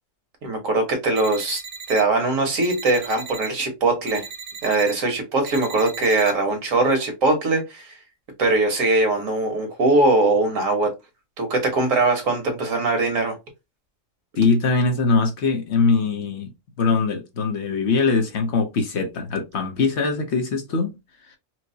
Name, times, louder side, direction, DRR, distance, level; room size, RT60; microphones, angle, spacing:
voice 1, 0.4-1.6 1.9-4.2 4.6-7.9 8.4-10.9 11.4-13.3, right 2 dB, 85° right, 1.6 m, -21 dB
sound 1, 1.2-2.0 2.6-3.5 4.1-4.9 5.4-6.3, right 6 dB, 55° right, 0.8 m, -37 dB
voice 2, 14.4-16.5 16.8-20.9 21.3-21.4, left 4 dB, 60° left, 1.0 m, -22 dB
4.5 x 2.1 x 2.7 m
omnidirectional pair, 1.3 m